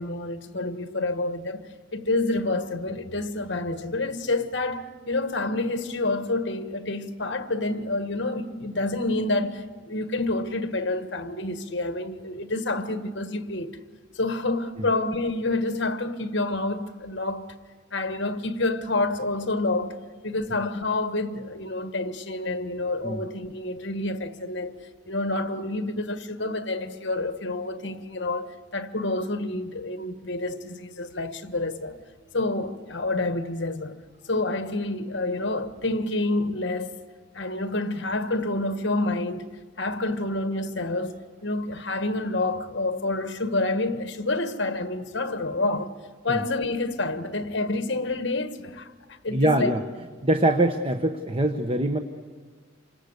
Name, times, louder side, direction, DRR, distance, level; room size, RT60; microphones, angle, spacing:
voice 1, 0.0-13.8 14.1-17.5 17.9-20.0 20.2-24.7 25.1-32.0 32.3-34.0 34.3-36.9 37.3-39.5 39.8-45.9 46.2-49.7, left 2 dB, 60° left, 1.5 m, -28 dB
voice 2, 49.3-49.8 50.2-52.0, right 1 dB, 30° right, 1.1 m, -23 dB
28.0 x 25.5 x 8.2 m
head